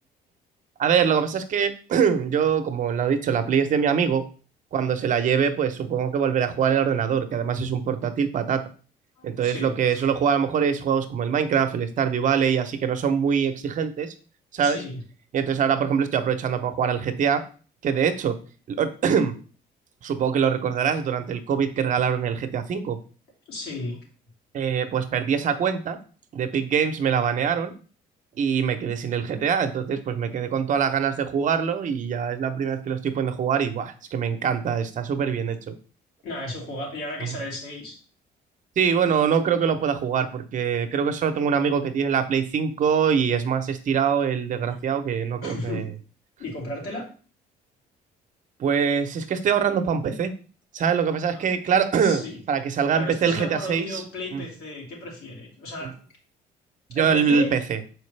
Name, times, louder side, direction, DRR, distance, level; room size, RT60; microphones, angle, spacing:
voice 1, 0.8-4.3 4.7-8.6 9.2-14.1 14.5-14.8 15.3-17.4 17.8-18.4 18.7-19.3 20.0-23.0 24.5-26.0 26.3-27.7 28.4-35.7 37.2-37.4 38.8-45.9 48.6-50.3 50.7-54.0 54.3-54.4 56.9-57.8, right 7 dB, 50° right, 8 dB, 0.8 m, -23 dB
voice 2, 9.2-10.0 14.6-15.0 23.5-24.0 36.2-38.0 44.7-44.8 45.4-45.9 46.4-47.1 52.0-52.4 52.9-56.0 56.9-57.5, left 1 dB, 75° left, -2 dB, 3.2 m, -34 dB
6.4 x 4.7 x 3.3 m, 0.39 s
cardioid pair, 110°, 17 cm